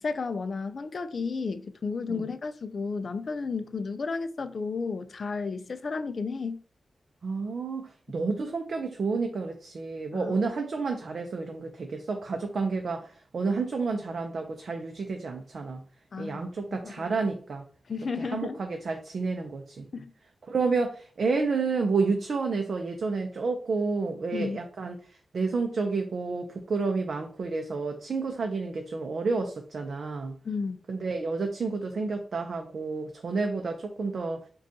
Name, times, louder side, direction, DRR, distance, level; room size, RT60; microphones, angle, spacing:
voice 1, 0.0-6.6 10.1-10.4 16.1-16.4 16.8-17.2 17.9-18.6 19.9-20.1 24.3-24.6 30.4-30.8, left 4 dB, 50° left, 0.3 m, -33 dB
voice 2, 7.2-15.8 16.2-17.6 18.2-19.9 20.5-25.0 25.3-30.4 30.9-34.4, right 4 dB, 55° right, 0.5 m, -30 dB
5.1 x 2.3 x 2.7 m
wide cardioid pair, 150°, 0 cm